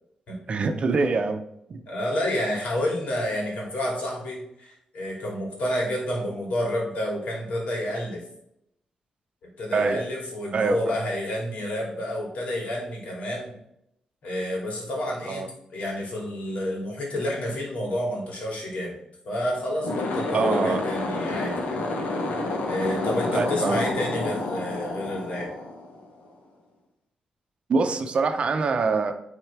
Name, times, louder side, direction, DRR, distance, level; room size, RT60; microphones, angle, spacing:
voice 1, 0.5-1.4 1.7-1.8 9.7-10.0 10.5-11.0 15.2-15.5 20.3-20.8 23.3-23.9 27.7-29.1, right 4 dB, 50° right, 6 dB, 0.7 m, -24 dB
voice 2, 1.9-8.2 9.6-13.6 14.2-19.0 19.2-21.8 22.7-25.5, left 1 dB, 70° left, -2 dB, 2.5 m, -29 dB
sound 1, 19.7-26.3, left 2 dB, 90° left, 1.2 m, -29 dB
9.1 x 3.7 x 3.4 m, 0.78 s
cardioid pair, 115°, 2 cm